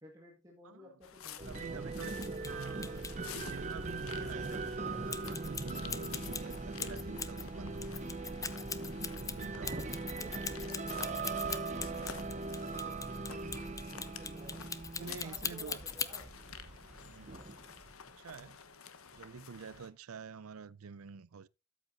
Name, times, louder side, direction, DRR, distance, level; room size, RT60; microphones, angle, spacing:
voice 1, 0.0-2.8 9.4-9.7 10.1-14.6 15.0-16.3, equal, 15° right, 1.6 m, -55 dB
sound 1, 1.0-19.9, left 6 dB, 80° left, 1.1 m, -51 dB
sound 2, 1.4-17.9, right 3 dB, 35° right, 0.7 m, -40 dB
voice 2, 1.4-8.0 8.9-9.9 13.0-13.5 14.5-14.7 15.0-15.8 17.0-17.4 18.0-18.6 19.1-21.5, right 5 dB, 85° right, 0.5 m, -48 dB
sound 3, 2.1-2.5 2.8-3.1 5.1-7.4 7.8-16.2, left 6 dB, 15° left, 0.5 m, -40 dB
13.0 x 8.1 x 2.6 m
head